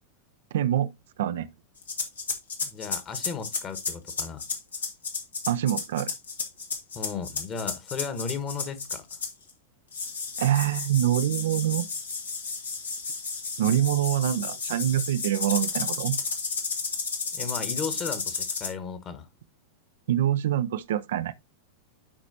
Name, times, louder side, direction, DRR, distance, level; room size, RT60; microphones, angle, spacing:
voice 1, 0.5-0.9 1.2-1.5 5.5-6.1 10.4-11.9 13.6-16.2 20.1-21.3, right 11 dB, 60° right, 0.5 m, -25 dB
sound 1, 1.8-9.5 9.9-18.7, left 4 dB, 70° left, 1.8 m, -32 dB
voice 2, 2.6-4.4 6.9-9.1 17.3-19.3, left 6 dB, 30° left, 1.5 m, -35 dB
11.5 x 5.0 x 2.7 m
figure-of-eight pair, 90°, 0 cm